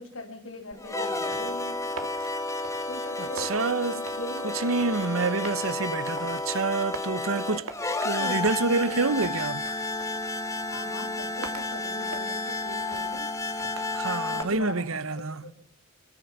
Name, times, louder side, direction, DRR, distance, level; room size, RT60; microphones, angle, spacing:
voice 1, 0.0-1.8 2.9-3.5 3.9-4.9 10.7-13.3 14.3-15.5, left 2 dB, 70° left, 6.6 m, -41 dB
sound 1, 0.7-14.4, left 2 dB, 15° left, 2.2 m, -31 dB
sound 2, 1.2-14.6, right 4 dB, 90° right, 3.1 m, -46 dB
voice 2, 3.4-4.0 4.5-7.7 8.0-9.8 13.9-15.4, right 3 dB, 70° right, 1.0 m, -27 dB
28.5 x 24.0 x 7.3 m
head